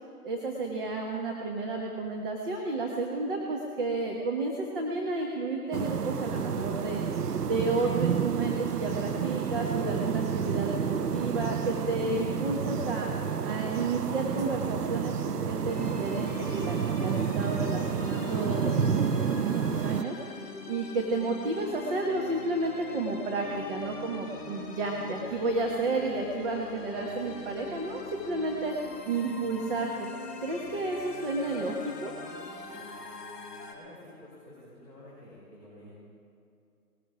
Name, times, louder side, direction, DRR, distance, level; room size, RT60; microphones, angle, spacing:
voice 1, 0.2-7.0 7.4-13.1 13.4-20.2 20.7-28.8 29.0-30.1 30.4-32.1, right 3 dB, 35° right, 1 dB, 1.5 m, -32 dB
sound 1, 5.7-20.0, right 7 dB, 90° right, 0.8 m, -30 dB
sound 2, 15.7-33.7, left 3 dB, 5° left, 0.8 m, -43 dB
voice 2, 33.7-35.9, left 1 dB, 20° right, -11 dB, 4.3 m, -50 dB
19.5 x 14.5 x 5.0 m, 2.4 s
hypercardioid pair, 155°, 46 cm